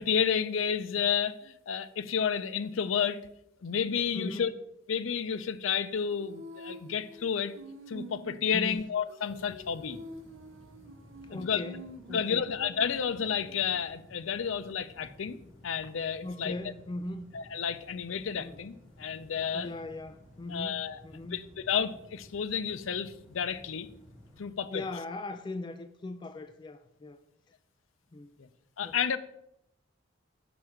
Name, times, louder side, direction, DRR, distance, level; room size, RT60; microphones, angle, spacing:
voice 1, 0.0-3.2 3.6-4.5 4.9-7.5 7.9-10.0 11.3-11.6 12.1-16.5 17.3-19.7 20.5-21.0 21.3-23.9 24.4-24.8 28.8-29.2, left 7 dB, 90° left, 0.5 m, -31 dB
voice 2, 4.1-4.5 8.5-8.8 11.2-11.8 12.1-12.5 16.2-17.3 18.4-18.6 19.0-19.2 19.5-21.5 24.7-27.2 28.1-28.4 28.8-29.0, left 2 dB, 25° left, 0.3 m, -39 dB
Female singing, 6.1-13.8, equal, 75° right, 0.7 m, -48 dB
sound 1, 9.2-24.4, left 1 dB, 5° left, 3.2 m, -55 dB
6.0 x 4.7 x 6.5 m
head